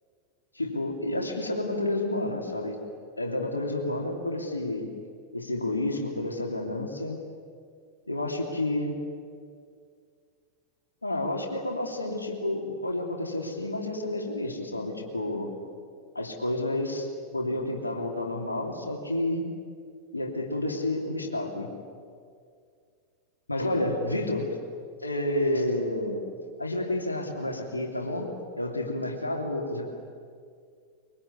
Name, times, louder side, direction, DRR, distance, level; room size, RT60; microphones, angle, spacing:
voice 1, 0.5-2.8 3.2-4.9 5.3-7.2 8.1-8.9 11.0-15.5 16.1-17.1 17.3-19.5 20.1-21.7 23.5-24.5 25.0-26.2 26.6-28.3 28.6-29.9, left 1 dB, 80° left, 2 dB, 3.1 m, -30 dB
24.5 x 23.0 x 9.7 m, 2.2 s
figure-of-eight pair, 90°, 0 cm